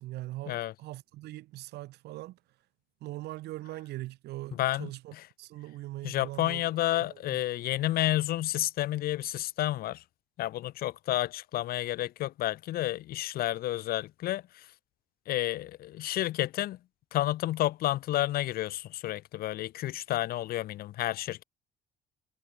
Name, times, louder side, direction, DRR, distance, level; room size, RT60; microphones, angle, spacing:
voice 1, 0.0-2.4 3.0-7.4, right 17 dB, 75° right, 1.0 m, -41 dB
voice 2, 4.6-5.2 6.0-10.0 10.4-14.7 15.3-16.8 17.1-21.4, left 14 dB, 65° left, 0.6 m, -30 dB
cardioid pair, 110°, 17 cm